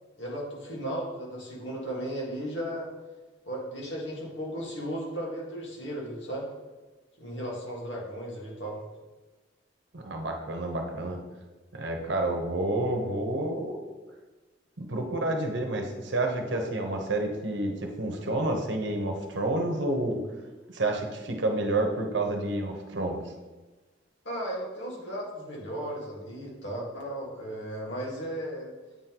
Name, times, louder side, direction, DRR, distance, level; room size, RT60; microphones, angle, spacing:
voice 1, 0.2-2.9 3.4-6.5 7.2-8.8 24.2-28.7, equal, 85° left, -3 dB, 1.7 m, -35 dB
voice 2, 9.9-11.2 11.7-13.8 14.8-20.2 20.7-23.2, right 2 dB, 75° right, 3 dB, 0.9 m, -29 dB
8.6 x 3.8 x 2.9 m, 1.2 s
head